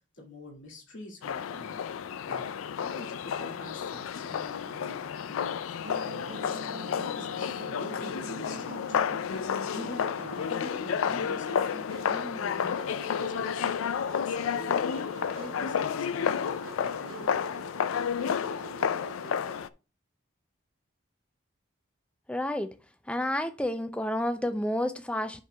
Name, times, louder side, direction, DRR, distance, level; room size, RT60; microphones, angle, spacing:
voice 1, 0.2-1.9 2.2-2.5 2.8-13.6 14.1-15.0 15.4-17.4, left 2 dB, 70° left, 2.2 m, -45 dB
sound 1, 1.2-19.7, left 7 dB, 90° left, 0.4 m, -31 dB
Musical instrument, 5.8-19.6, right 4 dB, 80° right, 0.7 m, -45 dB
voice 2, 22.3-22.7 23.1-25.4, left 1 dB, 5° left, 0.4 m, -30 dB
10.0 x 5.8 x 2.3 m
head